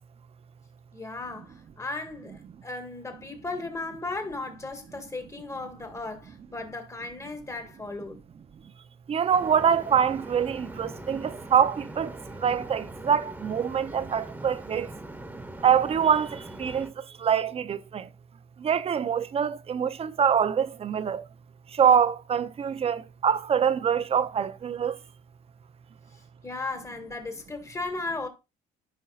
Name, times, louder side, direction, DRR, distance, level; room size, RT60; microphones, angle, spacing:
voice 1, 0.9-8.2 26.4-28.3, left 3 dB, 15° left, 1.8 m, -36 dB
voice 2, 9.1-12.1 12.4-14.9 15.6-16.9 17.2-18.0 18.6-21.2 21.8-24.9, right 7 dB, 35° right, 0.6 m, -24 dB
sound 1, 9.3-16.9, right 1 dB, 10° right, 1.3 m, -41 dB
13.5 x 5.3 x 2.4 m
cardioid pair, 110°, 17 cm